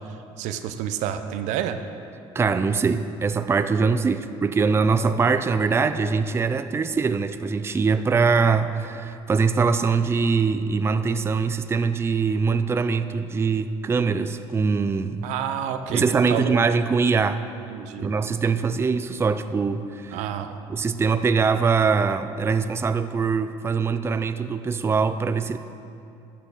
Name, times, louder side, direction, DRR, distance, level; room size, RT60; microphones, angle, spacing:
voice 1, 0.1-1.8 15.2-16.6 17.7-18.1 20.1-20.5, right 9 dB, 80° right, 9 dB, 0.6 m, -29 dB
voice 2, 2.3-15.3 15.9-17.5 18.0-20.2 20.7-25.6, right 5 dB, 20° right, 11 dB, 0.4 m, -23 dB
11.5 x 8.5 x 4.1 m, 2.7 s
supercardioid pair, 90°, 12 cm